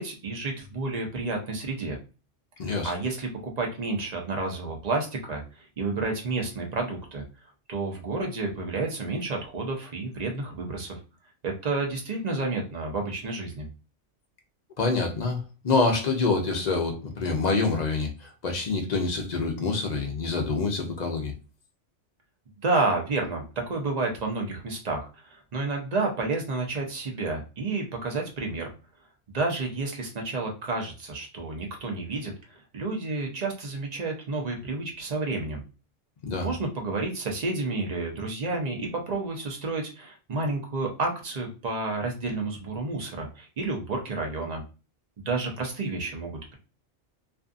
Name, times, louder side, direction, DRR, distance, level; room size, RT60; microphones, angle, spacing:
voice 1, 0.0-2.0 2.8-7.2 7.7-11.0 11.4-13.6 22.6-28.7 29.3-35.6 36.4-44.6 45.2-46.5, right 3 dB, 45° right, 0.6 m, -30 dB
voice 2, 2.6-2.9 14.8-21.3 36.2-36.5, left 3 dB, 50° left, 0.5 m, -26 dB
2.5 x 2.4 x 2.4 m
omnidirectional pair, 1.2 m